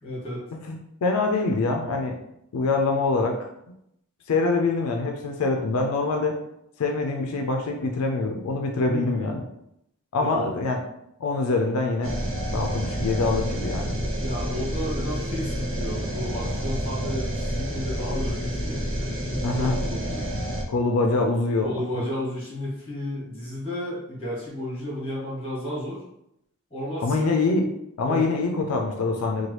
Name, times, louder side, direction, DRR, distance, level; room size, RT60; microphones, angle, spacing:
voice 1, 0.0-0.4 8.9-9.3 10.2-10.5 13.9-20.2 21.6-26.0 26.7-27.3 28.0-28.3, left 1 dB, 25° left, -5 dB, 1.3 m, -33 dB
voice 2, 0.7-2.2 2.5-3.4 4.3-6.3 6.8-9.4 10.1-10.8 11.2-12.2 12.5-13.9 19.4-19.8 20.7-21.7 27.0-27.7 28.0-29.5, left 3 dB, 85° left, 3 dB, 0.4 m, -24 dB
sound 1, 12.0-20.6, equal, 60° right, 0.7 m, -29 dB
2.9 x 2.3 x 3.1 m, 0.79 s
head